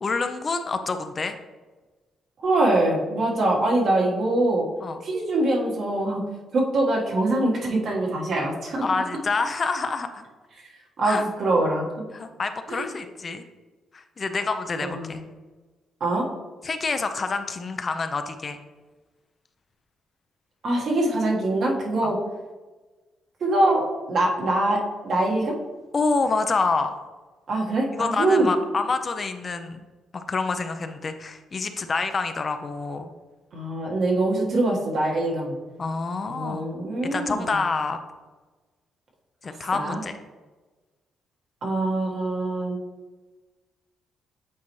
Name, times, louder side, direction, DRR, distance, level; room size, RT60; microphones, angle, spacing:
voice 1, 0.0-1.4 4.8-5.0 8.8-10.2 11.0-11.2 12.1-13.4 13.9-15.2 16.6-18.6 22.0-22.1 25.9-27.0 28.0-29.8 30.1-33.1 35.8-36.7 37.0-38.0 39.4-40.1, left 4 dB, 40° left, 8 dB, 0.5 m, -27 dB
voice 2, 2.4-4.7 5.0-6.2 6.5-8.8 11.0-11.9 12.7-12.9 14.8-15.3 16.0-16.3 20.6-22.2 23.4-25.5 27.5-28.5 33.5-35.6 36.3-37.5 39.7-40.0 41.6-42.8, right 2 dB, 60° right, -2 dB, 1.5 m, -23 dB
8.3 x 4.2 x 3.1 m, 1.3 s
cardioid pair, 90°, 0 cm